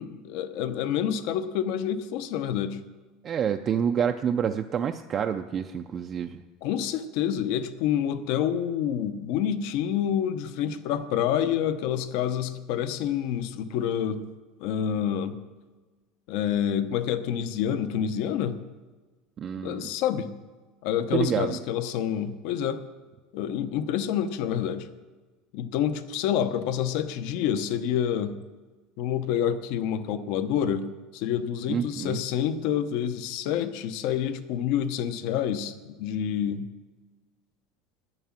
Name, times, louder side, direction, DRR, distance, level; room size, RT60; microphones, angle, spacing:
voice 1, 0.0-2.8 6.6-14.2 14.6-15.3 16.3-18.6 19.6-20.3 20.8-22.8 23.3-24.9 25.5-28.4 29.0-30.9 31.1-36.7, left 9 dB, 60° left, 11 dB, 0.9 m, -28 dB
voice 2, 3.2-6.4 19.4-19.9 21.1-21.6 31.7-32.2, right 8 dB, 25° right, 6 dB, 0.5 m, -28 dB
11.0 x 10.5 x 7.4 m, 1.3 s
cardioid pair, 160°, 0 cm